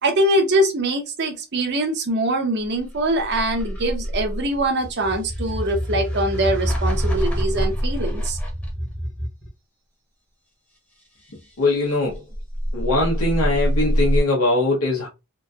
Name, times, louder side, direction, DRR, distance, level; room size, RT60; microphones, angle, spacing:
voice 1, 0.0-8.4, right 1 dB, 50° right, 0.7 m, -23 dB
sound 1, 2.8-9.5 12.1-14.2, equal, 5° left, 0.8 m, -25 dB
voice 2, 11.6-12.2 12.7-15.1, left 2 dB, 85° left, 0.8 m, -21 dB
3.0 x 2.6 x 2.3 m
head